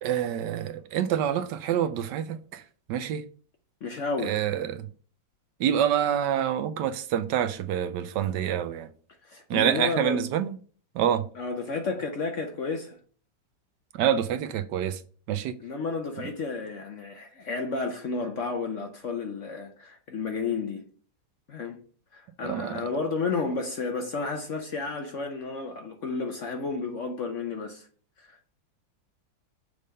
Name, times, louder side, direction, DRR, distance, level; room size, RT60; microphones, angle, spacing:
voice 1, 0.0-2.6 2.9-3.2 4.2-4.9 5.6-8.9 9.5-10.5 11.0-11.2 13.9-15.0 15.3-15.5 22.4-22.9, right 9 dB, 75° right, 1.1 m, -27 dB
voice 2, 3.8-4.4 9.2-10.3 11.3-12.9 15.6-20.8 21.5-21.8 22.1-27.9 28.2-28.4, left 4 dB, 60° left, 0.8 m, -32 dB
6.5 x 3.4 x 5.1 m
omnidirectional pair, 2.1 m